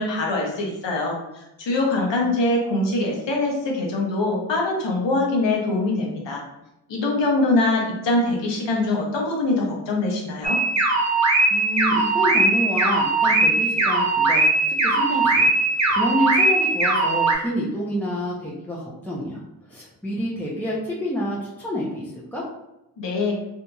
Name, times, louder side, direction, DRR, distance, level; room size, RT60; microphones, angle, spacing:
voice 1, 0.0-6.4 6.9-10.6 23.0-23.4, left 2 dB, 70° left, -1 dB, 0.9 m, -23 dB
sound 1, 10.4-17.3, right 2 dB, 40° right, 0.7 m, -20 dB
voice 2, 11.5-14.5 14.8-19.4 19.7-22.4, equal, 5° left, -6 dB, 0.6 m, -28 dB
2.7 x 2.7 x 2.3 m, 0.90 s
cardioid pair, 45°, 45 cm